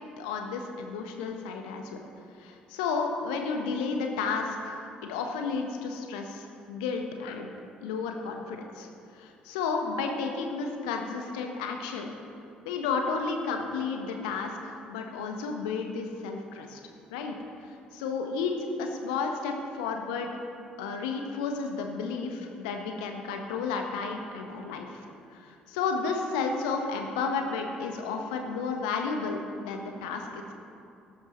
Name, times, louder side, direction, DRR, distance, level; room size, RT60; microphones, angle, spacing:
voice 1, 0.2-2.0 2.4-7.5 7.8-8.9 9.1-12.1 12.6-16.8 17.1-17.3 17.6-20.4 20.8-25.0 25.3-30.5, left 4 dB, 70° left, 3 dB, 1.3 m, -32 dB
17.5 x 12.5 x 3.2 m, 2.6 s
figure-of-eight pair, 50°, 4 cm